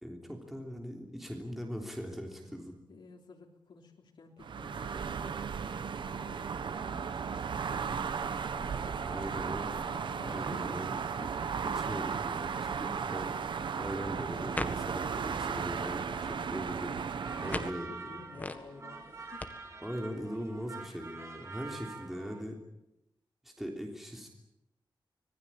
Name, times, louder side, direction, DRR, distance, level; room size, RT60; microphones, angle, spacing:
voice 1, 0.0-2.8 8.8-9.7 10.2-10.9 11.7-13.3 13.8-16.9 17.4-18.2 19.8-22.6 23.4-24.3, equal, 5° right, 1 dB, 3.3 m, -40 dB
voice 2, 2.9-8.0 8.5-9.2 9.5-10.8 11.2-11.6 12.7-13.0 16.9-19.7, left 4 dB, 85° left, -1 dB, 3.5 m, -53 dB
sound 1, 4.4-17.7, right 6 dB, 75° right, 1.2 m, -35 dB
sound 2, 13.4-19.5, left 2 dB, 20° left, 1.8 m, -44 dB
sound 3, 17.1-22.4, right 4 dB, 35° right, 4.2 m, -46 dB
26.0 x 20.0 x 8.8 m, 0.89 s
wide cardioid pair, 170°, 8 cm